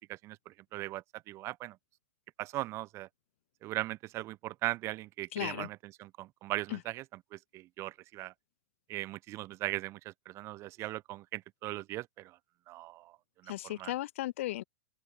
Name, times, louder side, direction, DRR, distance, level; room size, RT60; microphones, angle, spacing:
voice 1, 0.0-1.8 2.4-3.1 3.6-7.0 7.3-8.3 8.9-12.4 12.7-13.2 13.4-13.9, right 17 dB, 35° right, 1.0 m, -39 dB
voice 2, 5.3-5.7 6.7-6.8 13.5-14.6, left 15 dB, 55° left, 1.0 m, -36 dB
open air
figure-of-eight pair, 100°, 9 cm